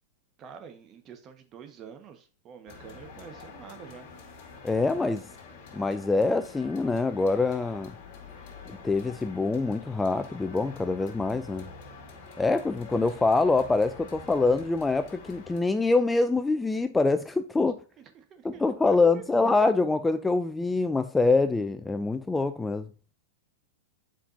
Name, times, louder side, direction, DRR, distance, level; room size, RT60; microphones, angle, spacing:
voice 1, 0.4-4.1 18.0-19.2, right 7 dB, 35° right, 1.3 m, -47 dB
sound 1, 2.7-15.6, left 4 dB, 55° left, 2.3 m, -47 dB
voice 2, 4.6-5.2 5.7-7.9 8.7-11.7 12.4-17.8 18.4-22.9, left 3 dB, 10° left, 0.4 m, -25 dB
7.4 x 5.1 x 2.6 m
hypercardioid pair, 115°, 0 cm